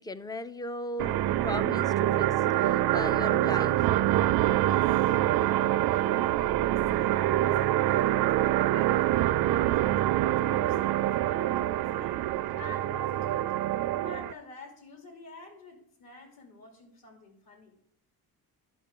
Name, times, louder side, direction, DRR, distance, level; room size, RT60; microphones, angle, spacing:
voice 1, 0.0-2.3 2.6-3.8, left 1 dB, 10° left, 0.3 m, -37 dB
sound 1, 1.0-14.3, right 14 dB, 70° right, 0.5 m, -25 dB
voice 2, 4.2-8.4 8.7-12.3 12.5-13.6 14.0-17.8, left 3 dB, 65° left, 3.1 m, -49 dB
12.0 x 5.9 x 3.7 m
cardioid pair, 120°, 39 cm